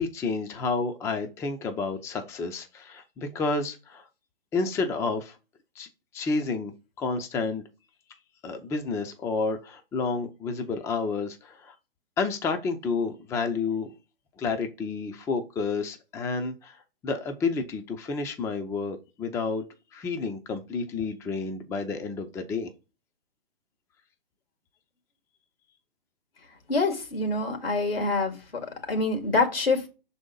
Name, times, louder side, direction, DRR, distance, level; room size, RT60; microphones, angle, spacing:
voice 1, 0.0-4.0 4.5-5.3 5.8-5.9 6.1-6.7 7.0-7.6 8.4-11.7 12.2-13.9 14.4-16.8 17.0-19.6 19.9-22.7, left 4 dB, 10° left, 0.5 m, -30 dB
voice 2, 26.7-28.3 28.9-29.8, left 3 dB, 80° left, 2.2 m, -25 dB
6.2 x 4.1 x 3.8 m
hypercardioid pair, 125°, 29 cm